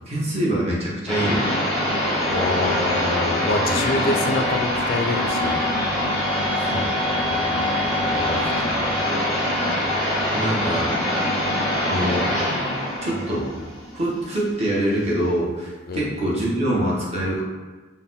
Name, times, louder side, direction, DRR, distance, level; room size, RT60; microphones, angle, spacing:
voice 1, 0.0-1.5 3.7-3.8 6.6-6.9 10.3-10.9 11.8-12.3 13.0-13.5 13.9-17.4, right 1 dB, 35° right, -5 dB, 0.9 m, -24 dB
sound 1, 1.1-14.5, left 1 dB, ahead, 0.7 m, -23 dB
voice 2, 2.2-5.6 7.3-7.7 8.1-8.8 15.9-16.1, left 3 dB, 50° left, 4 dB, 0.3 m, -27 dB
4.0 x 2.1 x 4.0 m, 1.3 s
head